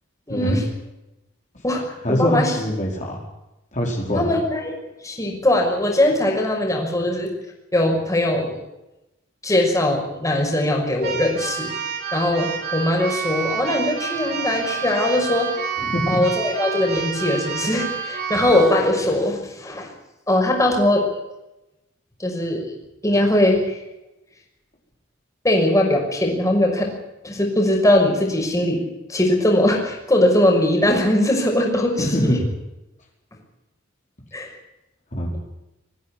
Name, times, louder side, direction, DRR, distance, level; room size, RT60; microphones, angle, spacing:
voice 1, 0.3-0.6 1.6-2.5 4.1-4.7 5.0-7.3 7.7-8.6 9.4-15.5 16.1-19.9 20.3-21.0 22.2-22.7 23.0-23.7 25.4-26.9 27.2-28.8 29.1-32.4 34.3-34.5, left 1 dB, 15° left, 1 dB, 5.9 m, -20 dB
voice 2, 2.0-3.2 3.7-4.3 15.8-16.2 32.0-32.5 35.1-35.4, equal, 40° left, -2 dB, 4.9 m, -23 dB
Keyboard (musical), 11.0-18.8, right 6 dB, 55° right, 6.8 m, -29 dB
22.0 x 15.0 x 9.9 m, 0.94 s
head